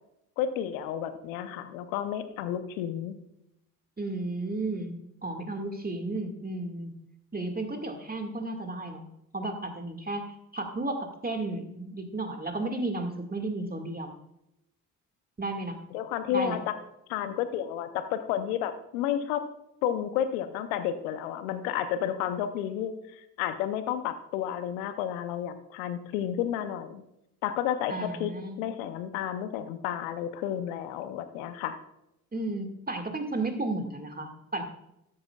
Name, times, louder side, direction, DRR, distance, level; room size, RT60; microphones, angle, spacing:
voice 1, 0.4-3.2 15.9-16.7 17.1-19.5 19.8-27.0 27.4-28.3 28.6-31.8, left 10 dB, 80° left, 11 dB, 0.8 m, -31 dB
voice 2, 4.0-6.9 7.3-9.0 9.3-14.2 15.4-15.8 16.3-16.6 27.9-28.6 32.3-34.6, right 2 dB, 20° right, 5 dB, 2.0 m, -33 dB
13.0 x 9.6 x 2.4 m, 0.83 s
hypercardioid pair, 40°, 41 cm